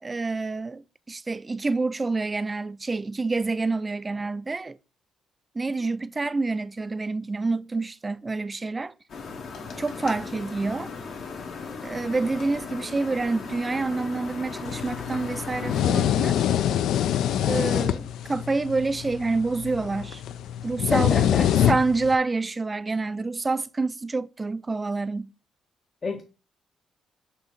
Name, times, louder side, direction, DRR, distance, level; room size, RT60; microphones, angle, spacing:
voice 1, 0.0-4.8 5.6-8.9 9.8-10.9 11.8-16.4 17.4-20.2 20.6-21.2 21.7-25.3, right 3 dB, 20° right, 0.3 m, -27 dB
sound 1, 9.1-15.8, left 4 dB, 65° left, 1.3 m, -37 dB
sound 2, 14.7-22.1, left 10 dB, 80° left, 0.4 m, -25 dB
voice 2, 20.9-21.7 26.0-26.2, left 4 dB, 35° left, 0.6 m, -28 dB
6.3 x 2.9 x 5.2 m
cardioid pair, 110°, 0 cm